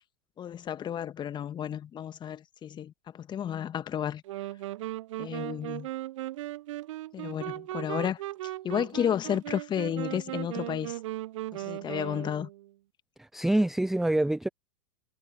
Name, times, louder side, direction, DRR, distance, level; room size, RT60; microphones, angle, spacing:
voice 1, 0.4-4.2 5.2-5.9 7.1-11.0 11.5-12.5, left 9 dB, 25° left, 1.9 m, -32 dB
sound 1, 4.2-12.7, right 15 dB, 55° right, 0.9 m, -37 dB
voice 2, 13.2-14.5, right 1 dB, ahead, 0.4 m, -26 dB
figure-of-eight pair, 95°, 18 cm